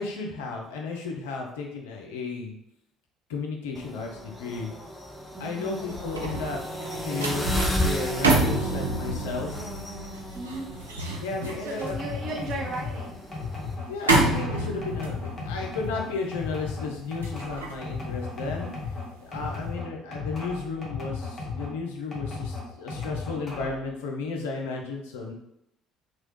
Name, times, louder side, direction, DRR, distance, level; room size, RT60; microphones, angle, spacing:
voice 1, 0.0-2.6 3.3-4.7 5.4-6.6 7.0-9.7 11.2-12.0 12.6-12.7 13.9-18.7 19.3-25.3, left 4 dB, 70° left, 1 dB, 0.5 m, -34 dB
sound 1, 3.7-13.7, equal, 10° left, 0.6 m, -34 dB
voice 2, 5.3-6.1 10.3-11.0 11.6-13.3, right 2 dB, 50° right, 0 dB, 0.7 m, -36 dB
sound 2, 5.7-19.0 19.4-19.7, right 2 dB, 85° right, 0.4 m, -29 dB
sound 3, 11.8-21.8 22.1-23.9, left 4 dB, 35° left, 1.0 m, -35 dB
2.9 x 2.2 x 3.1 m, 0.76 s
figure-of-eight pair, 55°, 0 cm